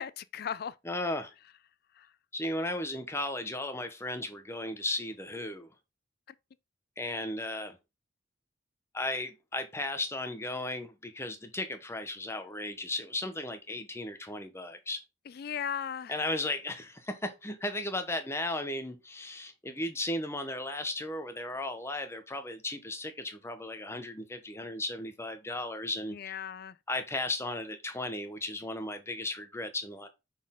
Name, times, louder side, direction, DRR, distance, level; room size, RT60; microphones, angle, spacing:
voice 1, 0.0-0.7 15.3-16.1 26.1-26.7, left 8 dB, 55° left, 0.4 m, -36 dB
voice 2, 0.8-1.3 2.3-5.7 7.0-7.8 8.9-15.0 16.1-26.3 26.9-30.1, left 2 dB, 15° left, 0.8 m, -35 dB
6.1 x 4.1 x 3.7 m
head